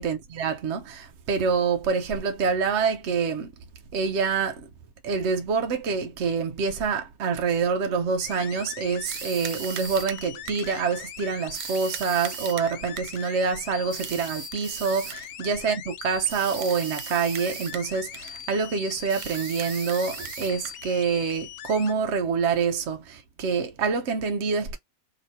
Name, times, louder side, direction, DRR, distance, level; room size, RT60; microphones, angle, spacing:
voice 1, 0.0-3.5 3.9-4.7 5.0-24.8, right 5 dB, 60° right, 0.9 m, -26 dB
sound 1, 8.2-21.9, left 10 dB, 70° left, 0.5 m, -41 dB
sound 2, 9.1-10.8 11.5-13.3 13.9-15.3 16.3-17.9 18.1-18.5 19.1-21.0, right 10 dB, 85° right, 1.1 m, -38 dB
3.0 x 2.9 x 4.1 m
omnidirectional pair, 1.5 m